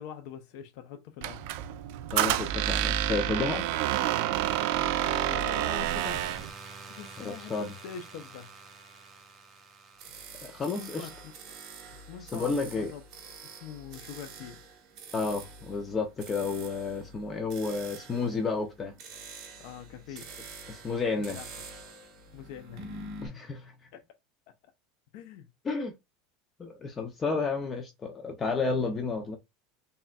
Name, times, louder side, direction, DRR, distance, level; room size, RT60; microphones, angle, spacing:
voice 1, 0.0-1.5 4.9-6.3 6.9-8.5 10.8-11.3 11.9-13.0 13.4-14.6 19.6-20.3 20.9-21.5 22.3-23.1 23.9-24.0 25.1-25.5, left 9 dB, 65° left, 0.7 m, -44 dB
Squeak, 1.2-6.5, right 12 dB, 65° right, 0.4 m, -28 dB
voice 2, 2.1-3.7 7.2-7.7 10.4-11.1 12.2-12.9 15.1-19.0 20.1-20.2 20.7-21.4 23.2-23.7 25.6-25.9 26.6-29.4, left 4 dB, 20° left, 0.6 m, -31 dB
sound 1, 5.8-12.6, right 4 dB, 25° right, 1.1 m, -49 dB
sound 2, 10.0-23.3, right 3 dB, 45° right, 2.1 m, -46 dB
4.2 x 3.5 x 2.3 m
supercardioid pair, 145°, 0 cm